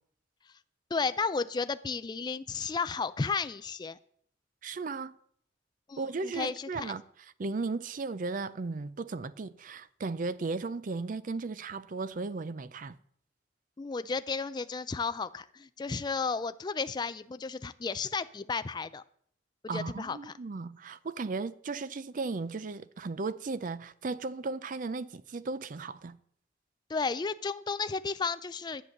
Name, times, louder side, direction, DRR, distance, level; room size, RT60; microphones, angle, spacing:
voice 1, 0.9-4.0 5.9-6.9 13.8-19.0 19.7-20.3 26.9-28.8, left 4 dB, 20° left, 0.3 m, -33 dB
voice 2, 4.6-5.2 6.0-13.0 19.7-26.2, right 3 dB, 45° right, 0.5 m, -36 dB
11.0 x 7.5 x 6.5 m
head